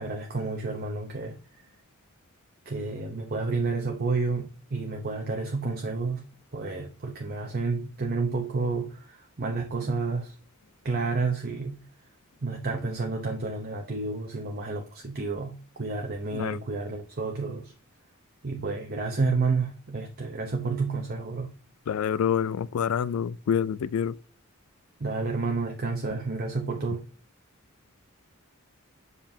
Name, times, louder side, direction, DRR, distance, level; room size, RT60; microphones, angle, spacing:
voice 1, 0.0-1.4 2.7-6.2 6.5-10.3 10.8-11.8 12.4-17.7 18.4-21.5 25.0-27.0, right 3 dB, 45° right, 0.8 m, -30 dB
voice 2, 21.9-24.2, left 8 dB, 80° left, 0.3 m, -27 dB
7.0 x 5.3 x 2.7 m
head